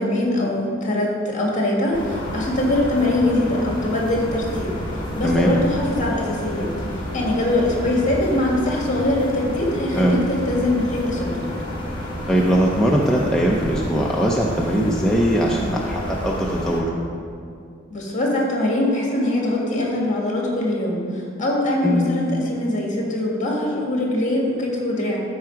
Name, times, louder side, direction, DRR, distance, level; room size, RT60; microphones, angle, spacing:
voice 1, 0.0-4.7 5.2-6.7 7.1-11.3 17.9-25.2, left 1 dB, 40° left, -2 dB, 1.9 m, -22 dB
sound 1, 1.9-16.8, equal, 25° left, 1.4 m, -30 dB
voice 2, 5.2-5.6 9.9-10.2 12.3-16.9 21.8-22.2, equal, 5° left, -3 dB, 0.5 m, -20 dB
12.5 x 4.8 x 4.6 m, 2.4 s
head